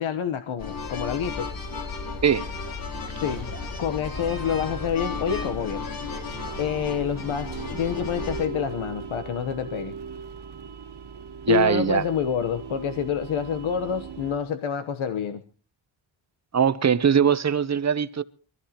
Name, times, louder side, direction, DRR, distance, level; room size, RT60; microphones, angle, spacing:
voice 1, 0.0-1.5 3.2-3.5 3.8-5.9 6.6-9.9 11.5-15.4, left 8 dB, 80° left, 1.1 m, -27 dB
sound 1, 0.6-8.5, left 4 dB, 45° left, 3.4 m, -34 dB
sound 2, 4.1-14.4, right 6 dB, 55° right, 1.6 m, -39 dB
voice 2, 11.5-12.0 16.5-18.2, right 7 dB, 35° right, 0.8 m, -21 dB
25.0 x 14.5 x 2.9 m
wide cardioid pair, 130°, 47 cm